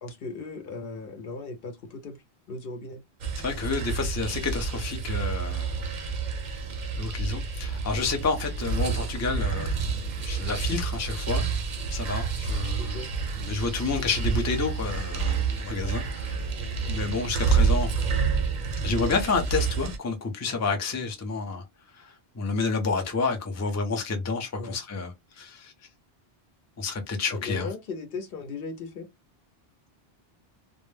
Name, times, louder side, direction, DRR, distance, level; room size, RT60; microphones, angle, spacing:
voice 1, 0.0-2.2 2.5-3.0 12.8-13.1 16.5-16.8 24.5-24.8 27.3-29.1, left 3 dB, 65° left, 0.8 m, -37 dB
sound 1, 3.2-20.0, right 5 dB, 55° right, 0.6 m, -29 dB
voice 2, 3.4-5.8 7.0-11.5 11.9-13.0 13.4-16.4 16.9-17.9 18.8-21.7 21.9-25.7 26.8-27.7, left 4 dB, 25° left, 0.4 m, -30 dB
2.2 x 2.0 x 3.1 m
omnidirectional pair, 1.0 m